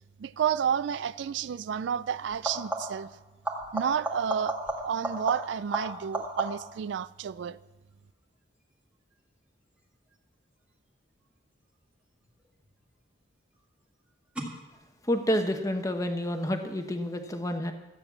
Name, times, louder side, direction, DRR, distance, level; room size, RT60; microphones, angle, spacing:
voice 1, 0.2-3.1 3.7-4.6 4.8-7.6, right 8 dB, 65° right, 0.3 m, -30 dB
sound 1, 0.9-1.1 2.3-3.1 3.4-6.8 12.3-12.8 14.4-14.5, right 1 dB, 5° right, 1.8 m, -35 dB
voice 2, 15.1-17.7, equal, 15° left, 0.9 m, -29 dB
13.0 x 8.8 x 7.0 m
head